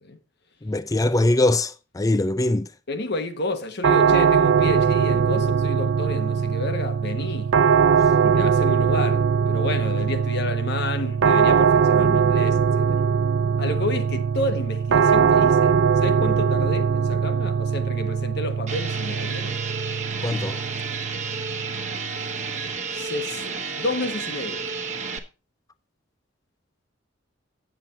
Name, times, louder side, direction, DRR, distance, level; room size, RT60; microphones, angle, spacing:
voice 1, 0.6-2.7 20.2-20.6, left 1 dB, 20° left, 0.4 m, -22 dB
voice 2, 2.9-7.5 8.2-13.1 13.6-19.6 22.9-24.6, left 2 dB, 60° left, 1.3 m, -30 dB
sound 1, 3.8-22.7, right 6 dB, 75° right, 0.4 m, -21 dB
sound 2, 18.7-25.2, right 5 dB, 40° right, 1.2 m, -31 dB
8.9 x 7.7 x 4.2 m
head